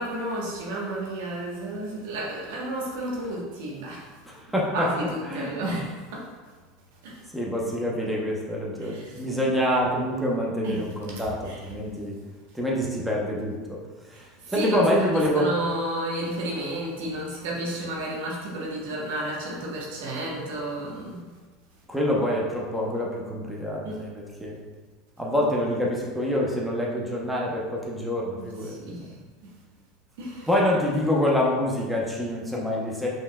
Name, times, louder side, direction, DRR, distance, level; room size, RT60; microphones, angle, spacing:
voice 1, 0.0-4.1 4.7-6.2 7.0-7.2 8.8-9.3 10.6-11.7 14.1-21.2 23.8-24.0 28.6-29.1 29.4-29.5 30.2-30.5, right 1 dB, 75° right, -3 dB, 1.2 m, -32 dB
voice 2, 4.3-4.9 5.3-5.5 7.3-12.2 12.5-13.8 14.1-15.5 21.9-24.6 25.2-28.8 30.5-33.1, equal, 5° right, -3 dB, 0.8 m, -26 dB
5.5 x 3.2 x 2.3 m, 1.4 s
supercardioid pair, 100°, 0 cm